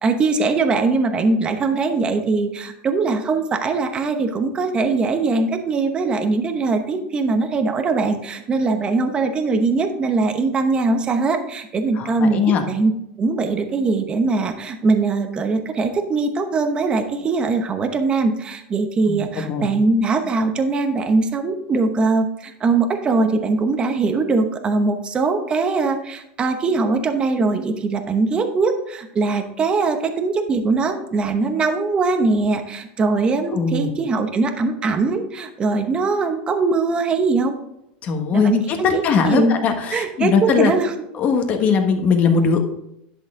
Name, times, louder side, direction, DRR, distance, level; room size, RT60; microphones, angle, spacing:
voice 1, 0.0-12.4 12.7-12.9 13.2-37.5 38.3-39.5 39.9-40.9, right 3 dB, 20° right, 6 dB, 0.9 m, -21 dB
voice 2, 11.9-12.6 19.1-19.7 33.5-33.9 38.0-40.7 41.1-42.6, left 6 dB, 35° left, 5 dB, 1.4 m, -20 dB
11.0 x 6.4 x 3.7 m, 0.81 s
supercardioid pair, 150°, 5 cm